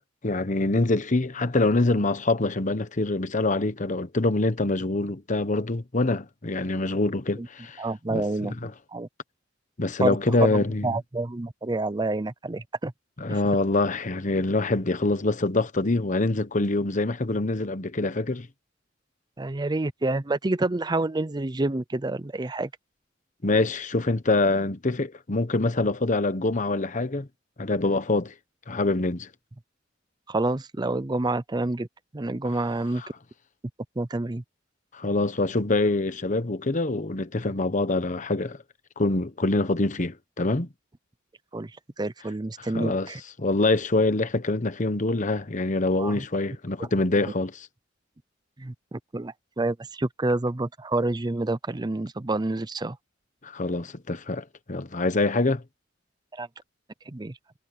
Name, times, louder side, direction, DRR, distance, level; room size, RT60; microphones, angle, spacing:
voice 1, 0.2-7.8 8.1-8.7 9.8-10.9 13.2-18.5 23.4-27.3 27.6-28.3 28.7-29.3 34.9-38.6 39.0-40.7 42.7-43.1 43.4-47.7 53.4-55.6, left 2 dB, 40° left, 1.1 m, -25 dB
voice 2, 7.8-8.6 8.9-9.1 10.0-10.2 10.5-12.9 19.4-22.7 30.3-31.9 32.1-33.0 34.0-34.4 41.5-41.7 42.0-43.2 46.0-46.2 46.8-46.9 48.6-53.0 56.3-56.5 57.1-57.3, right 2 dB, 20° right, 0.6 m, -28 dB
head